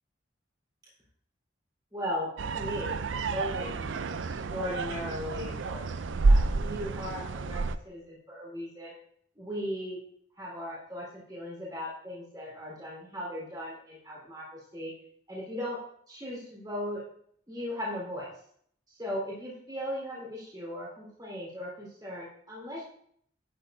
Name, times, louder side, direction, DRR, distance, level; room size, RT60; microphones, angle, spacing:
voice 1, 1.9-5.8 6.3-8.9 9.4-10.0 10.4-14.9 15.3-15.8 16.1-17.0 17.5-18.3 18.9-22.8, equal, 20° right, -5 dB, 4.0 m, -38 dB
sound 1, 2.4-7.8, right 3 dB, 85° right, 0.5 m, -29 dB
12.5 x 9.5 x 2.7 m, 0.65 s
head